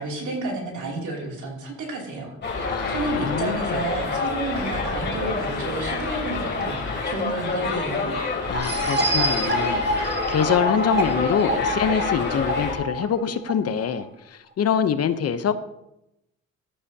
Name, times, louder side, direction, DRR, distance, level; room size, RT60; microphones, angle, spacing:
voice 1, 0.0-2.4 2.9-8.1, right 3 dB, 80° right, -1 dB, 2.9 m, -31 dB
Subway metro underground, 2.4-12.7, left 3 dB, 35° left, 2.8 m, -28 dB
voice 2, 2.7-3.8 8.5-15.5, left 7 dB, 55° left, 11 dB, 0.8 m, -25 dB
sound 1, 8.5-14.0, right 1 dB, 35° right, 1.9 m, -27 dB
12.5 x 10.0 x 2.8 m, 0.87 s
cardioid pair, 90°, 30 cm